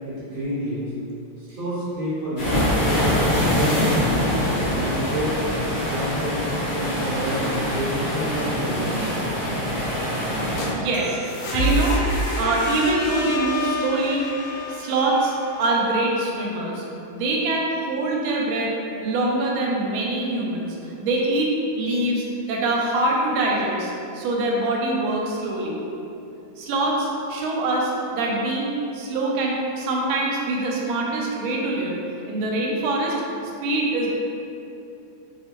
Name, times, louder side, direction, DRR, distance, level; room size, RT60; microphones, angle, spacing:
voice 1, 0.0-0.9 1.4-3.1 3.5-5.4 5.9-6.5 6.7-8.9, equal, 55° right, -10 dB, 1.0 m, -29 dB
sound 1, 2.4-10.7, equal, 50° left, 0.7 m, -24 dB
sound 2, 10.5-16.2, equal, 75° left, 1.1 m, -28 dB
voice 2, 10.7-14.3 14.7-16.8 17.1-18.7 19.0-25.8 26.6-31.9 32.3-33.2 33.6-34.1, right 2 dB, 85° right, -2 dB, 1.4 m, -24 dB
3.2 x 2.7 x 2.9 m, 2.8 s
omnidirectional pair, 2.2 m